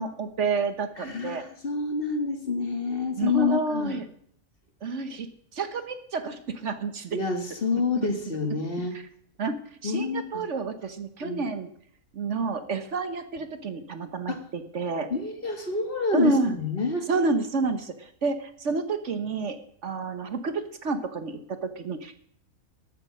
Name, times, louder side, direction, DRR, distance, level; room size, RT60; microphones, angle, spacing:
voice 1, 0.0-1.4 3.1-4.0 4.8-7.2 8.0-8.1 8.9-9.0 9.4-9.5 9.8-11.7 12.1-15.1 16.1-16.5 17.1-22.1, right 3 dB, 60° right, 9 dB, 1.3 m, -29 dB
voice 2, 1.0-4.0 7.1-9.0 9.8-10.4 11.2-11.4 14.3-14.4 15.1-17.1, left 4 dB, 40° left, 5 dB, 1.9 m, -28 dB
13.0 x 8.5 x 6.2 m, 0.65 s
omnidirectional pair, 1.5 m